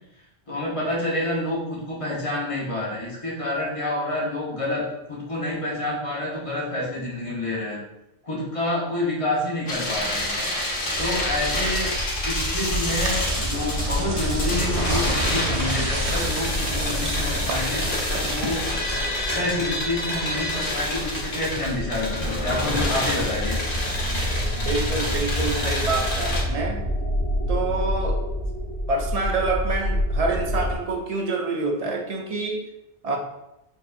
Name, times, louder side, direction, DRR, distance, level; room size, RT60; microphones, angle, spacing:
voice 1, 0.5-7.8 8.2-10.3 11.0-11.9 12.3-18.7 19.3-23.6, left 1 dB, 30° left, -6 dB, 1.0 m, -28 dB
sound 1, 9.7-26.4, left 1 dB, 55° left, 1.0 m, -28 dB
sound 2, 10.9-30.8, equal, 80° left, 1.0 m, -29 dB
sound 3, 12.1-19.9, right 3 dB, 85° right, 0.9 m, -33 dB
voice 2, 24.5-26.8 27.5-28.2 28.9-32.7 33.0-33.2, right 3 dB, 55° right, 2 dB, 0.4 m, -27 dB
4.4 x 2.8 x 2.5 m, 0.89 s
omnidirectional pair, 1.1 m